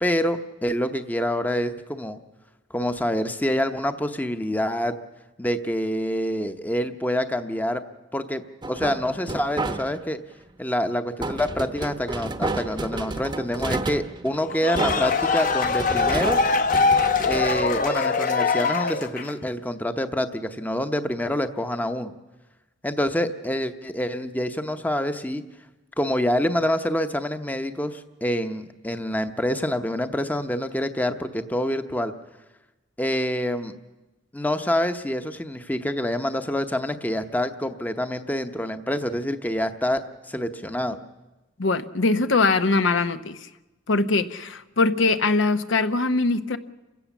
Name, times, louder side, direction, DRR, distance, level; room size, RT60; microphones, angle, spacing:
voice 1, 0.0-2.2 2.7-4.9 5.4-7.8 8.1-8.4 8.7-10.2 10.6-16.4 17.3-22.1 22.8-25.4 26.0-32.1 33.0-33.7 34.3-40.0 40.3-41.0, left 1 dB, 10° left, 8 dB, 0.8 m, -26 dB
sound 1, 8.6-10.2 11.2-18.3, right 2 dB, 25° right, 0.9 m, -31 dB
sound 2, 14.4-19.5, left 4 dB, 45° left, 0.9 m, -23 dB
voice 2, 41.6-43.5 43.9-46.6, left 3 dB, 80° left, 10 dB, 0.9 m, -22 dB
28.5 x 16.5 x 7.1 m, 1.1 s
head